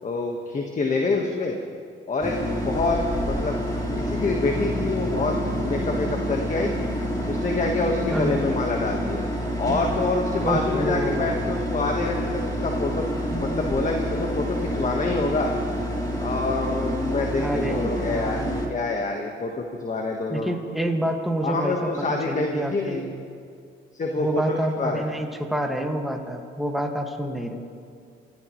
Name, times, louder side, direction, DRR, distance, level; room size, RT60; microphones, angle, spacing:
voice 1, 0.0-1.6 2.1-3.0 3.3-3.6 4.0-6.9 7.2-9.2 9.6-13.1 13.4-15.5 16.2-18.4 18.7-20.5 21.4-23.1 23.9-25.0, left 3 dB, 40° left, 1 dB, 1.5 m, -27 dB
sound 1, 2.2-18.7, equal, 20° left, 3.4 m, -28 dB
voice 2, 8.1-8.4 10.4-11.5 17.4-18.6 20.3-21.8 22.1-23.1 24.2-27.6, right 1 dB, ahead, 2 dB, 1.9 m, -28 dB
28.5 x 14.5 x 3.2 m, 2.3 s
cardioid pair, 90°, 20 cm